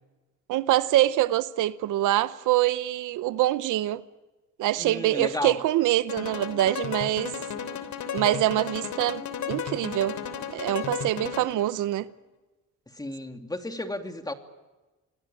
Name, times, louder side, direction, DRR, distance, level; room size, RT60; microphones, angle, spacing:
voice 1, 0.5-4.0 4.6-7.3 8.1-9.2 9.5-10.2 10.5-12.1, right 14 dB, 85° right, 0.9 m, -25 dB
voice 2, 4.8-5.6 12.9-14.3, left 1 dB, 10° left, 2.7 m, -33 dB
sound 1, 6.1-11.7, left 7 dB, 70° left, 3.3 m, -34 dB
28.0 x 20.0 x 9.0 m
cardioid pair, 90°, 30 cm